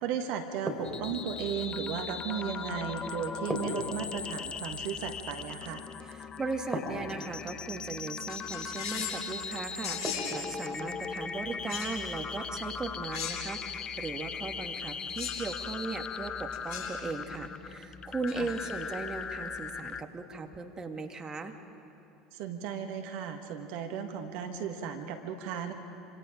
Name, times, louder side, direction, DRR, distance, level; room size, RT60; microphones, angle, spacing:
voice 1, 0.0-5.8 18.4-18.5 22.3-25.7, right 7 dB, 55° right, 6 dB, 1.6 m, -35 dB
sound 1, 0.7-1.4 3.5-4.5 6.7-7.5 10.0-10.7, equal, 5° right, 4.8 m, -37 dB
sound 2, 0.8-20.0, left 5 dB, 30° left, 0.9 m, -39 dB
voice 2, 6.0-10.0 10.3-21.5, right 3 dB, 20° right, 4 dB, 2.0 m, -38 dB
sound 3, 8.3-9.3 9.8-10.4 11.7-12.0 13.1-13.7 15.2-15.5 16.5-16.9 18.3-18.7, left 8 dB, 55° left, 6.2 m, -38 dB
27.0 x 26.0 x 5.1 m, 2.9 s
figure-of-eight pair, 70°, 3 cm